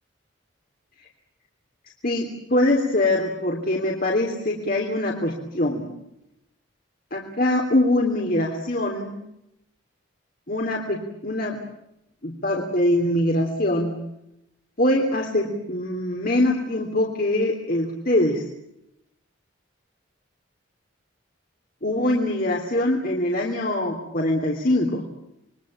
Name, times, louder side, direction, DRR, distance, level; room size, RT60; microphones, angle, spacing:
voice 1, 2.0-5.9 7.1-9.2 10.5-11.6 12.2-13.9 14.8-18.4 21.8-25.0, left 1 dB, 45° left, 0 dB, 3.3 m, -23 dB
27.5 x 22.5 x 8.7 m, 0.83 s
head